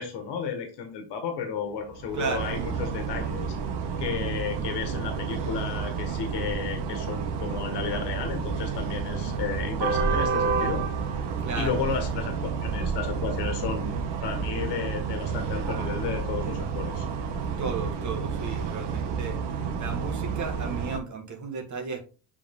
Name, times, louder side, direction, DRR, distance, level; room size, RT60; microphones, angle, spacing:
voice 1, 0.0-3.6 4.0-10.9 11.6-17.1, left 6 dB, 70° left, 1.8 m, -33 dB
sound 1, 1.9-21.0, right 6 dB, 70° right, 1.3 m, -30 dB
voice 2, 2.1-2.5 11.4-11.8 17.6-19.4 19.8-22.0, right 5 dB, 40° right, 1.5 m, -34 dB
6.9 x 3.7 x 3.8 m
cardioid pair, 120°, 43 cm